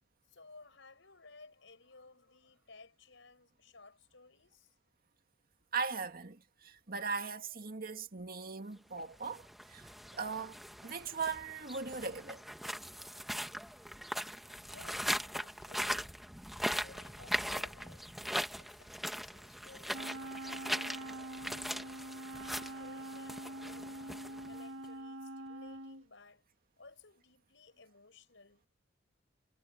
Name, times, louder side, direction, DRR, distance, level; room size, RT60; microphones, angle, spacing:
voice 1, 0.3-4.7 14.7-16.2 16.6-18.1 18.6-21.2 21.5-22.0 22.5-26.4 26.8-28.6, left 3 dB, 70° left, 5.8 m, -58 dB
voice 2, 5.7-10.6 10.8-12.4, right 5 dB, 50° right, 2.1 m, -39 dB
sound 1, 9.1-24.8, equal, ahead, 1.2 m, -40 dB
Wind instrument woodwind instrument, 19.9-26.1, right 1 dB, 80° right, 1.8 m, -45 dB
head